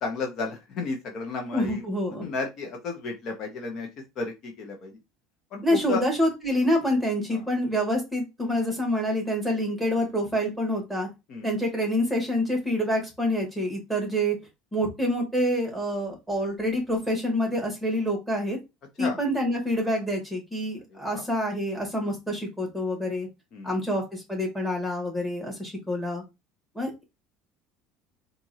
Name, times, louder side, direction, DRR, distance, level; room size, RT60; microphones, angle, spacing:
voice 1, 0.0-1.8 2.2-3.9 4.2-5.0 5.5-6.0 7.3-7.4 11.3-11.5 19.0-19.2 20.9-21.3 23.5-23.8, left 4 dB, 50° left, 2 dB, 1.0 m, -33 dB
voice 2, 1.5-2.3 5.6-11.1 11.4-14.4 14.7-18.6 19.0-23.3 23.6-26.2 26.7-27.0, equal, ahead, 0 dB, 2.2 m, -27 dB
4.5 x 2.7 x 2.8 m, 0.24 s
supercardioid pair, 100°, 0 cm